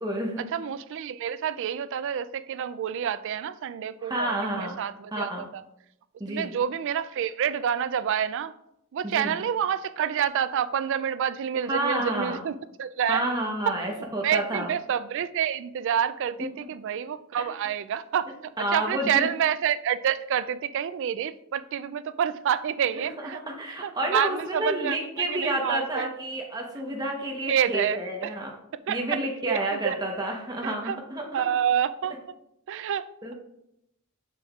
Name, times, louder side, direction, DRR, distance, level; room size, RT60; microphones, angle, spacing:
voice 1, 0.0-0.4 4.0-4.8 5.1-5.5 6.2-6.5 9.0-9.4 11.6-12.4 13.1-14.7 18.6-19.3 22.9-28.5 28.9-31.4 32.8-32.9 33.2-33.3, right 1 dB, 20° right, 1.0 m, -30 dB
voice 2, 0.5-5.6 6.3-8.5 8.9-13.2 14.2-23.4 23.8-26.1 27.5-28.3 28.9-29.0 29.5-30.0 30.6-31.0 31.3-32.3 32.7-33.1, right 8 dB, 60° right, 0.3 m, -28 dB
7.0 x 6.8 x 2.4 m
head